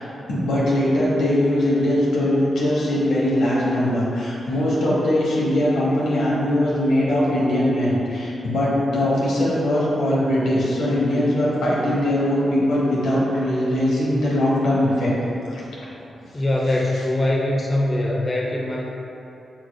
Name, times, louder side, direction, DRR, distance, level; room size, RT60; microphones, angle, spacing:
voice 1, 0.3-15.1 15.4-15.6, left 1 dB, 85° left, -7 dB, 1.0 m, -21 dB
voice 2, 16.3-18.8, left 1 dB, 35° left, -3 dB, 0.6 m, -22 dB
4.7 x 3.8 x 2.2 m, 2.9 s
cardioid pair, 55°, 0 cm